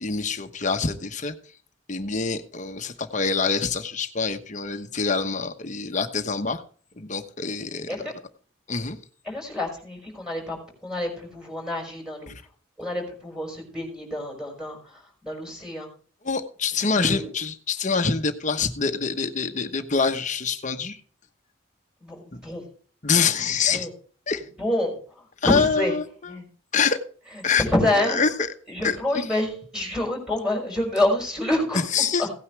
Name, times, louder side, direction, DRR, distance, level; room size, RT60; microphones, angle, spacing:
voice 1, 0.0-1.3 1.9-6.6 7.0-8.0 8.7-9.0 12.3-12.4 16.2-21.0 22.3-22.4 23.0-23.9 24.3-24.5 25.4-26.4 26.7-27.0 27.4-27.6 27.9-28.5 28.8-29.4 31.9-32.3, left 5 dB, 40° left, 8 dB, 1.1 m, -25 dB
voice 2, 9.3-10.6 10.8-12.3 12.8-15.9 16.9-17.3 22.0-22.6 23.7-23.9 24.6-25.0 25.4-25.9 26.3-26.5 27.6-28.2 28.7-31.8 32.2-32.3, left 1 dB, 5° right, 1 dB, 5.6 m, -27 dB
17.0 x 9.5 x 3.3 m, 0.43 s
head